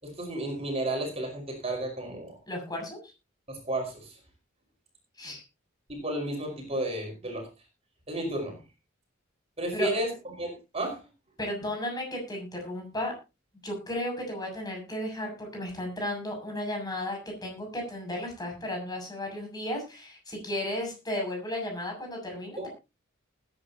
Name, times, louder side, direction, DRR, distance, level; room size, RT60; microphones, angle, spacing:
voice 1, 0.0-2.4 3.5-4.2 5.9-7.5 8.1-8.6 9.6-10.1 10.3-11.0 22.6-22.7, right 1 dB, 30° right, 2 dB, 5.2 m, -32 dB
voice 2, 2.5-3.0 5.2-5.4 9.7-9.9 11.4-13.1 13.6-22.7, left 1 dB, 20° left, 2 dB, 6.9 m, -34 dB
20.0 x 10.0 x 2.9 m, 0.28 s
head